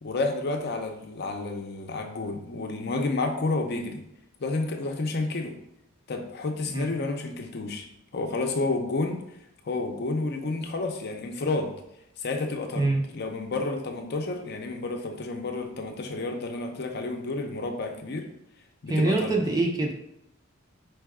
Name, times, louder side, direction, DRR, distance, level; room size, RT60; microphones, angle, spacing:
voice 1, 0.0-4.0 4.4-5.6 6.1-7.9 8.1-9.3 9.6-11.7 12.2-12.9 13.1-18.3 18.8-19.3, left 3 dB, 50° left, 3 dB, 0.6 m, -30 dB
voice 2, 18.9-19.9, right 2 dB, 20° right, 1 dB, 0.5 m, -24 dB
4.7 x 2.3 x 4.7 m, 0.81 s
head